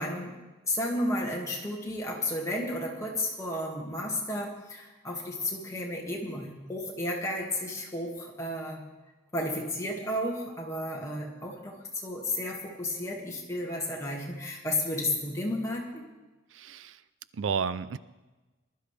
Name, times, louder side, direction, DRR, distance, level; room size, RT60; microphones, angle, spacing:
voice 1, 0.0-8.8 9.3-16.1, left 1 dB, 15° left, -2 dB, 1.9 m, -33 dB
voice 2, 16.5-17.0 17.3-18.0, right 6 dB, 80° right, 16 dB, 0.4 m, -31 dB
20.5 x 12.5 x 3.3 m, 1.2 s
head